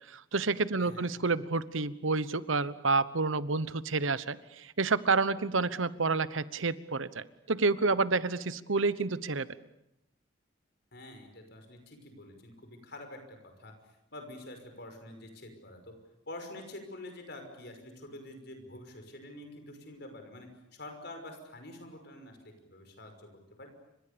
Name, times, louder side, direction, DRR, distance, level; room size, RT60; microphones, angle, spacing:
voice 1, 0.1-9.5, right 3 dB, 85° right, 15 dB, 1.1 m, -29 dB
voice 2, 0.8-1.1 10.9-15.9 16.3-23.3 23.6-23.7, left 1 dB, 55° left, 5 dB, 5.8 m, -47 dB
30.0 x 26.0 x 7.0 m, 0.84 s
head